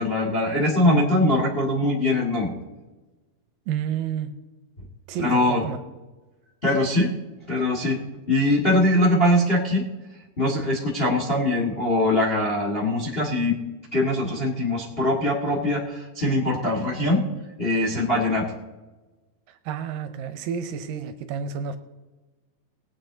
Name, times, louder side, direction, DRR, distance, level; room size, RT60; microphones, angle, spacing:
voice 1, 0.0-2.5 5.2-5.6 6.6-7.1 7.5-8.0 8.3-9.8 10.4-13.5 13.9-17.2 17.6-18.4, left 1 dB, 25° left, -2 dB, 1.2 m, -22 dB
voice 2, 3.7-4.3 5.1-5.8 19.5-21.8, right 7 dB, 75° right, 10 dB, 2.3 m, -30 dB
20.0 x 8.7 x 3.9 m, 1.2 s
omnidirectional pair, 4.2 m